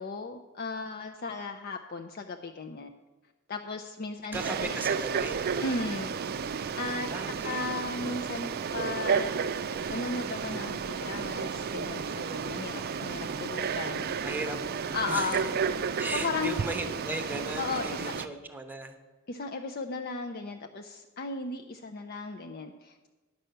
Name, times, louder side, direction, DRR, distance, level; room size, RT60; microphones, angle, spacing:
voice 1, 0.0-2.9 3.5-4.8 5.6-6.2 6.8-7.1 7.4-9.4 9.9-14.0 14.9-15.4 16.1-16.5 17.6-18.1 19.3-23.1, left 3 dB, 45° left, 4 dB, 0.5 m, -35 dB
voice 2, 4.3-5.9 7.1-7.6 13.7-14.6 14.8-15.4 16.0-19.0, right 2 dB, 10° right, 7 dB, 0.9 m, -37 dB
Frog, 4.3-18.3, right 6 dB, 45° right, 0.4 m, -32 dB
10.5 x 5.5 x 7.8 m, 1.2 s
head